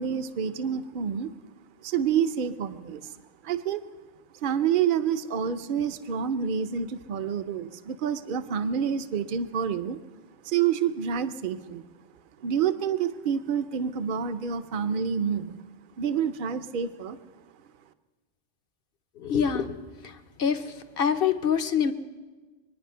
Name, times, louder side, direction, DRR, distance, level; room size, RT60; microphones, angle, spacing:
voice 1, 0.0-1.3 1.8-3.1 3.4-3.8 4.4-10.0 10.4-11.8 12.4-15.6 16.0-17.2, right 7 dB, 50° right, 11 dB, 0.8 m, -28 dB
voice 2, 19.2-20.1 20.4-21.9, left 7 dB, 55° left, 10 dB, 0.9 m, -26 dB
24.5 x 9.9 x 5.6 m, 1.3 s
omnidirectional pair, 1.2 m